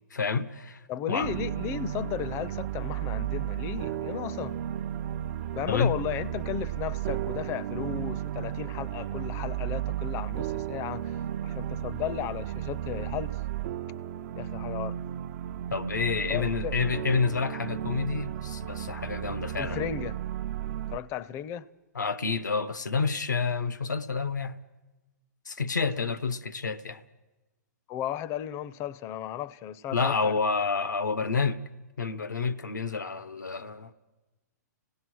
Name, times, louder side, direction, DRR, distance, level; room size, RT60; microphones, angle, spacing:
voice 1, 0.1-0.8 1.1-1.3 5.7-6.0 15.7-19.8 21.9-24.6 25.5-27.0 29.9-31.6 32.0-33.9, left 5 dB, 90° left, 0.8 m, -29 dB
voice 2, 0.9-4.6 5.5-13.4 14.3-15.0 16.3-16.8 19.6-20.2 20.9-21.7 27.9-30.3 31.1-31.2, left 10 dB, 30° left, 0.6 m, -35 dB
sound 1, 1.2-21.0, right 11 dB, 50° right, 0.6 m, -34 dB
25.5 x 17.5 x 6.3 m
hypercardioid pair, 125°, 10 cm